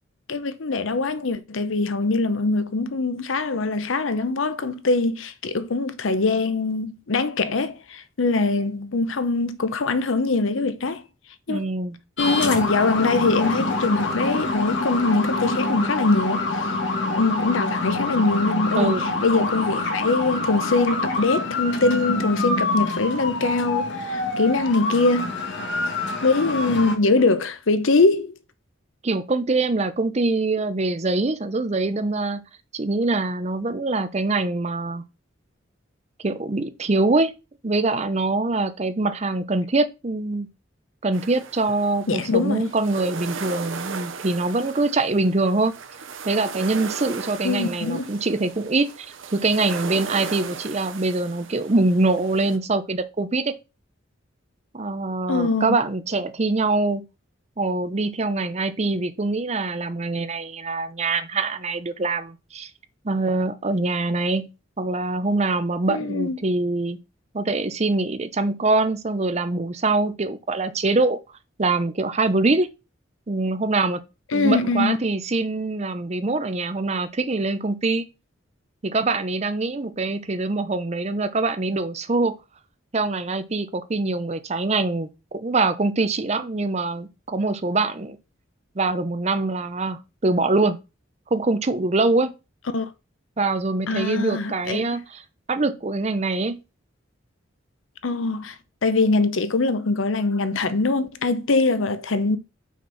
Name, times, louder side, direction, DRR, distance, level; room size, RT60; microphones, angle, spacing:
voice 1, 0.3-11.0 11.5-11.7 12.2-16.5 17.1-25.4 26.2-28.3 42.1-42.7 47.4-48.1 55.3-55.8 65.9-66.4 74.3-75.0 92.7-92.9 93.9-94.9 98.0-98.6 98.8-102.4, left 3 dB, 85° left, 0.8 m, -23 dB
voice 2, 11.5-12.0 18.7-19.0 29.0-32.4 32.7-35.0 36.2-37.3 37.6-40.5 41.0-45.7 46.3-53.5 54.7-57.0 57.6-62.7 63.0-64.5 64.8-67.0 67.3-71.2 71.6-72.7 73.3-74.0 74.3-78.1 78.8-82.3 82.9-88.2 88.8-90.8 91.3-92.3 93.4-95.2 95.5-96.6, right 3 dB, 35° right, 0.6 m, -24 dB
sound 1, 12.2-27.0, left 2 dB, 65° left, 1.5 m, -26 dB
sound 2, 41.1-52.6, right 5 dB, 85° right, 0.9 m, -37 dB
5.9 x 4.4 x 5.6 m
head